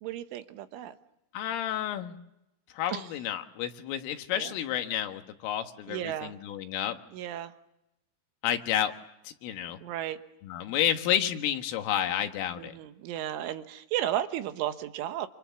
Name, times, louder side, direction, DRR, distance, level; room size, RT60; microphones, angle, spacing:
voice 1, 0.0-1.0 2.9-3.1 4.3-4.5 5.9-6.4 7.1-7.5 9.8-10.2 12.6-15.3, right 12 dB, 75° right, 9 dB, 3.5 m, -34 dB
voice 2, 1.3-2.2 2.8-7.0 8.4-8.9 9.3-9.8 10.4-12.7, left 10 dB, 80° left, 6 dB, 4.1 m, -30 dB
28.0 x 28.0 x 7.1 m, 0.85 s
omnidirectional pair, 5.8 m